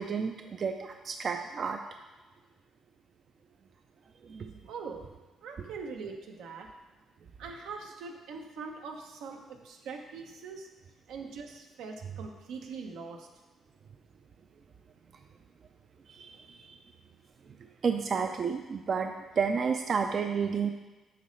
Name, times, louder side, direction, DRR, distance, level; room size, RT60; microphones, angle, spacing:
voice 1, 0.0-1.8 4.2-4.5 16.1-16.7 17.8-20.7, right 6 dB, 50° right, 5 dB, 0.4 m, -31 dB
voice 2, 4.6-5.1 5.4-6.7 7.4-10.7 11.1-13.3, right 4 dB, 90° right, 3 dB, 0.8 m, -42 dB
7.9 x 5.2 x 3.1 m, 1.2 s
cardioid pair, 90°, 0 cm